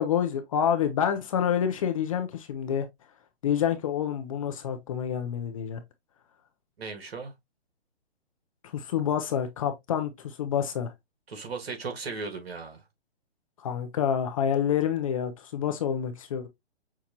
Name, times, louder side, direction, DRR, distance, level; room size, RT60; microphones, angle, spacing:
voice 1, 0.0-2.9 3.4-5.8 8.7-10.9 13.6-16.5, left 8 dB, 30° left, 0.5 m, -28 dB
voice 2, 6.8-7.3 11.3-12.8, right 4 dB, 65° right, 1.7 m, -36 dB
5.9 x 2.3 x 2.8 m
figure-of-eight pair, 135°, 33 cm